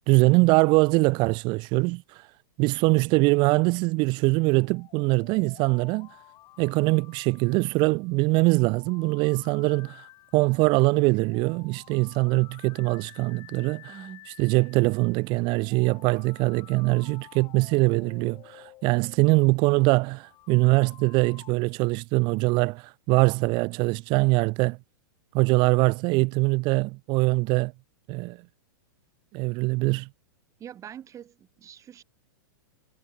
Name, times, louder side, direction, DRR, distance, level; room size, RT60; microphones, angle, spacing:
voice 1, 0.1-2.2 2.6-6.1 6.6-10.0 10.3-14.0 14.4-24.8 25.3-27.7 28.1-28.4 29.3-30.1, right 26 dB, 45° right, 0.9 m, -23 dB
sound 1, 4.4-21.5, left 17 dB, 40° left, 7.5 m, -52 dB
voice 2, 13.9-14.3 30.6-32.0, right 10 dB, 25° right, 5.4 m, -44 dB
hypercardioid pair, 120°, 12 cm